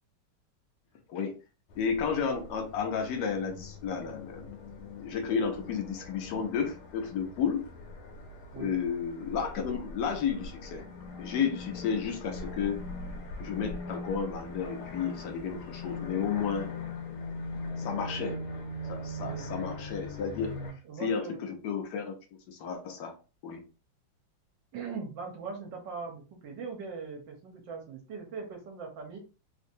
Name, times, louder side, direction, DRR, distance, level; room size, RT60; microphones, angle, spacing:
voice 1, 1.1-1.4 1.8-4.5 5.0-7.7 8.6-10.9 11.2-12.8 13.4-16.7 17.8-18.4 18.9-20.6 21.0-22.1 22.5-23.2 23.4-23.6, left 6 dB, 65° left, 5 dB, 1.1 m, -32 dB
sound 1, 1.7-20.7, left 2 dB, 85° left, 1.7 m, -41 dB
voice 2, 20.8-21.4 24.7-29.2, right 5 dB, 65° right, 2 dB, 1.4 m, -40 dB
3.6 x 2.6 x 2.6 m, 0.33 s
omnidirectional pair, 2.3 m